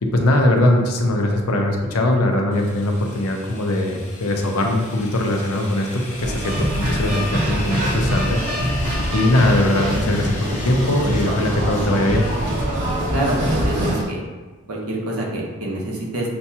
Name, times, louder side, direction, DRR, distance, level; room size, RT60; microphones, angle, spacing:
voice 1, 0.0-8.8 9.1-12.2, left 1 dB, 90° left, 2 dB, 0.7 m, -20 dB
sound 1, 2.5-12.6, left 2 dB, 35° left, 0.6 m, -35 dB
sound 2, 6.2-14.0, equal, 35° right, 0.8 m, -24 dB
voice 2, 13.1-14.2 14.7-16.3, right 1 dB, 85° right, -3 dB, 1.0 m, -26 dB
6.6 x 2.3 x 2.8 m, 1.3 s
head